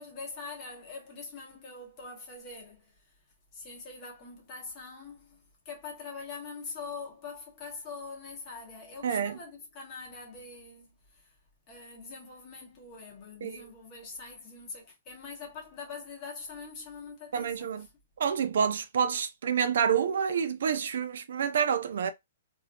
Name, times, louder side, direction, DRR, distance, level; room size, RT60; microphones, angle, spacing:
voice 1, 0.0-2.9 3.5-11.3 11.7-17.8, left 4 dB, 25° left, 1.3 m, -43 dB
voice 2, 9.0-9.4 13.4-13.6 17.3-17.9 18.2-22.1, right 7 dB, 70° right, 0.5 m, -28 dB
3.3 x 2.6 x 2.3 m
hypercardioid pair, 170°, 0 cm